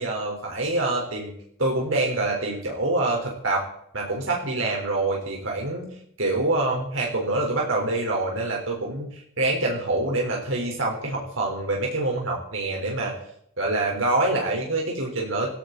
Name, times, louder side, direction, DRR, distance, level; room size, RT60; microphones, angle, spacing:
voice 1, 0.0-1.3 1.6-3.7 3.9-5.9 6.2-13.1 13.6-15.6, right 2 dB, 80° right, -1 dB, 4.3 m, -26 dB
16.5 x 16.5 x 4.1 m, 0.69 s
head